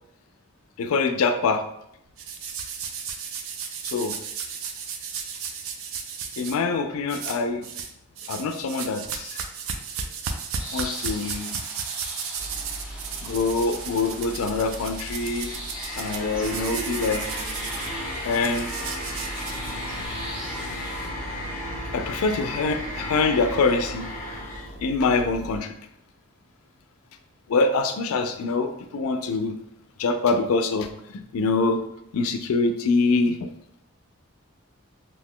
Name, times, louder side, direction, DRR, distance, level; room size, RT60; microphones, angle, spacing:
voice 1, 0.8-1.6 3.8-4.2 6.4-7.7 8.3-9.4 10.7-11.6 13.2-15.5 15.9-17.2 18.2-18.7 21.9-24.1 24.8-25.8 27.5-29.5 30.0-31.8 32.1-33.5, left 3 dB, 80° left, 8 dB, 0.3 m, -24 dB
sound 1, 2.2-6.6 7.1-20.1, right 6 dB, 70° right, 0.3 m, -34 dB
sound 2, 10.6-21.1, equal, 5° right, 0.5 m, -41 dB
sound 3, 12.4-25.6, equal, 35° left, 0.6 m, -35 dB
2.6 x 2.1 x 3.6 m, 0.76 s
head